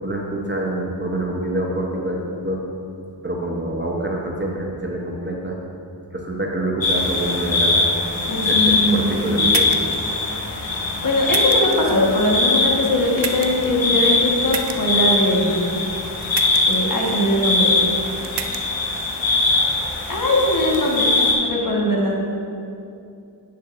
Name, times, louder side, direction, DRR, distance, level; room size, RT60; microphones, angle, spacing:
voice 1, 0.0-2.2 2.4-2.6 3.2-5.6 6.1-7.9 8.4-10.0, right 1 dB, 25° right, -1 dB, 0.9 m, -26 dB
sound 1, 6.8-21.3, left 3 dB, 90° left, 1.0 m, -21 dB
voice 2, 8.2-9.5 11.0-15.7 16.7-17.7 20.1-21.1 21.4-22.1, left 1 dB, 45° left, -3 dB, 1.5 m, -21 dB
sound 2, 9.5-10.0 11.3-11.8 13.2-13.7 14.5-14.8 16.3-16.8 18.2-18.6, right 8 dB, 65° right, 0.5 m, -28 dB
10.5 x 5.8 x 2.6 m, 2.6 s
wide cardioid pair, 50°, 44 cm